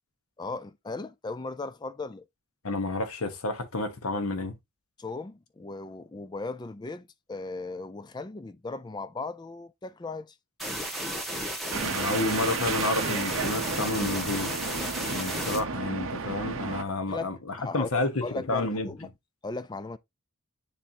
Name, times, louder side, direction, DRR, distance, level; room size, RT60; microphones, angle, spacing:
voice 1, 0.4-2.3 5.0-10.4 17.1-19.1 19.4-20.0, left 3 dB, 20° left, 0.4 m, -37 dB
voice 2, 2.6-4.5 11.7-14.6 15.1-18.1 18.5-18.9, left 2 dB, 80° left, 1.3 m, -30 dB
sound 1, 10.6-15.6, equal, ahead, 1.6 m, -33 dB
sound 2, 11.7-16.8, right 4 dB, 65° right, 0.9 m, -33 dB
9.9 x 3.5 x 2.8 m
head